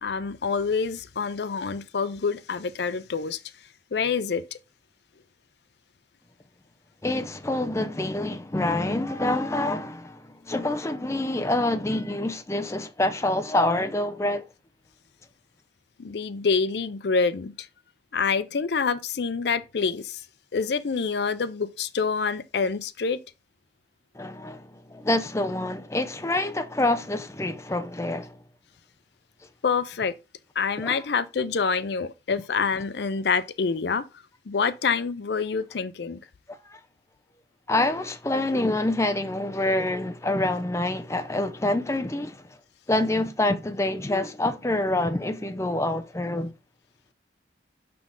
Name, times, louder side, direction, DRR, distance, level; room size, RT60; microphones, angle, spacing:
voice 1, 0.0-3.4 3.9-4.6 16.0-17.7 18.1-20.2 20.5-23.2 29.6-30.1 30.6-34.0 34.5-36.2, left 5 dB, 65° left, 0.5 m, -26 dB
voice 2, 7.0-14.4 24.1-28.4 30.8-31.0 36.5-36.8 37.7-42.4 42.9-46.5, left 1 dB, 15° left, 0.6 m, -26 dB
6.1 x 6.0 x 3.7 m
head